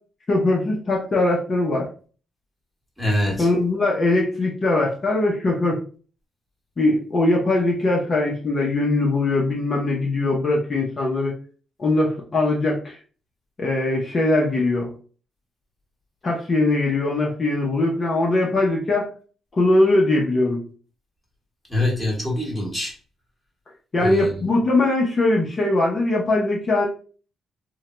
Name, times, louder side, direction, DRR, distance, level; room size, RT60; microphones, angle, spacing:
voice 1, 0.3-1.9 3.4-5.8 6.8-11.3 11.8-13.0 13.6-14.9 16.2-19.1 19.5-20.6 23.9-26.9, left 2 dB, 35° left, -2 dB, 0.7 m, -21 dB
voice 2, 3.0-3.5 21.7-22.9 24.0-24.4, left 1 dB, ahead, -2 dB, 1.2 m, -24 dB
3.6 x 2.2 x 2.9 m, 0.40 s
cardioid pair, 125°, 0 cm